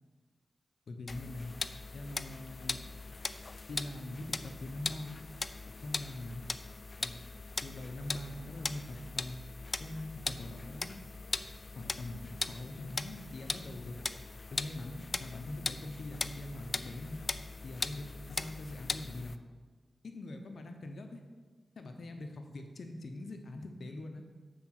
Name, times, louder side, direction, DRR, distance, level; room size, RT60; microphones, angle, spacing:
voice 1, 0.9-1.5 1.9-2.8 3.7-5.2 5.8-6.4 7.0-7.2 7.6-9.4 9.8-11.0 11.7-14.0 14.5-17.2 17.6-19.4 20.0-21.2 21.8-24.2, left 2 dB, 75° left, 5 dB, 0.9 m, -43 dB
sound 1, 1.1-19.4, left 3 dB, 45° left, 0.4 m, -40 dB
8.7 x 4.9 x 5.9 m, 1.4 s
cardioid pair, 50°, 0 cm